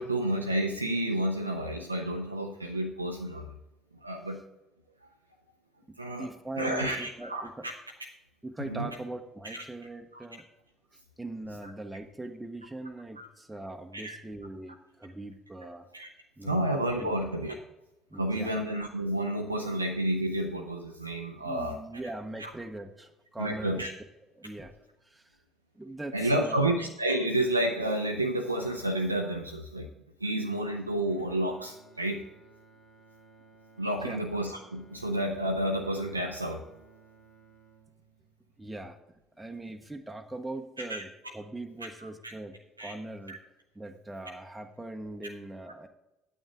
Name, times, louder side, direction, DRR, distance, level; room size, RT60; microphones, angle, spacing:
voice 1, 0.0-3.5 4.0-4.4 6.0-6.3 6.6-7.7 8.6-8.9 9.4-9.6 10.1-10.2 11.6-11.7 13.2-13.3 13.9-14.2 15.6-16.1 16.4-17.6 18.1-21.8 22.4-22.5 23.4-23.9 26.1-29.9 30.2-32.2 33.8-36.6 40.8-41.0 42.0-42.3 42.8-42.9 43.3-43.4, right 1 dB, 90° right, 3 dB, 0.5 m, -30 dB
voice 2, 5.9-7.7 8.4-10.4 11.2-15.9 16.4-16.7 17.0-17.2 18.1-18.5 21.4-23.9 24.4-24.7 25.0-25.4 25.7-26.7 30.5-30.6 34.0-34.2 38.6-39.0 39.4-42.5 42.8-43.4 43.7-45.9, right 2 dB, 10° right, 4 dB, 0.9 m, -41 dB
Bowed string instrument, 31.1-39.3, right 4 dB, 55° left, 2.5 m, -59 dB
9.0 x 8.9 x 3.7 m, 0.96 s
figure-of-eight pair, 50°, 0 cm